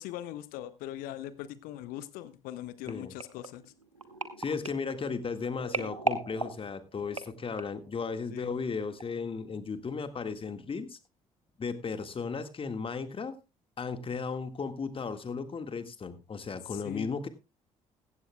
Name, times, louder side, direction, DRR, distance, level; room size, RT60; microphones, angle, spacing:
voice 1, 0.0-3.6 8.3-8.5 16.7-17.1, left 13 dB, 60° left, 15 dB, 1.1 m, -41 dB
sound 1, 2.9-7.9 8.5-8.7 9.0-9.1, right 3 dB, 90° right, 0.9 m, -37 dB
voice 2, 4.4-11.0 11.6-13.3 13.8-17.3, left 5 dB, 35° left, 10 dB, 1.8 m, -35 dB
16.0 x 15.0 x 2.3 m, 0.27 s
figure-of-eight pair, 45°, 17 cm